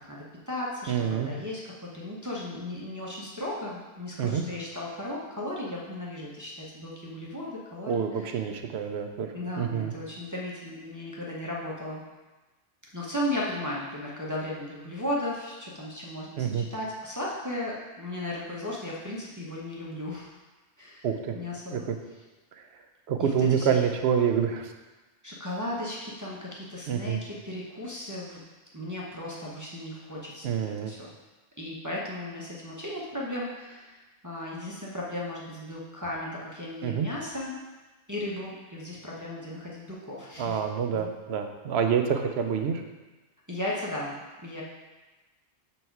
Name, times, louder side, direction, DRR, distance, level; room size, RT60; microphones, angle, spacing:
voice 1, 0.0-8.4 9.3-12.0 12.9-20.3 20.8-21.1 21.3-21.9 23.2-23.8 25.2-28.4 28.7-31.1 31.6-37.6 38.1-40.6 40.9-41.1 43.5-44.6, left 1 dB, 20° right, -5 dB, 0.8 m, -36 dB
voice 2, 0.9-1.3 4.2-4.4 7.9-9.9 16.4-16.6 21.0-21.4 21.7-22.0 22.6-22.7 23.1-24.7 26.9-27.2 30.4-30.9 36.8-37.1 40.4-42.8, right 7 dB, 75° right, 5 dB, 0.9 m, -27 dB
6.7 x 4.3 x 4.6 m, 1.2 s
omnidirectional pair, 1.1 m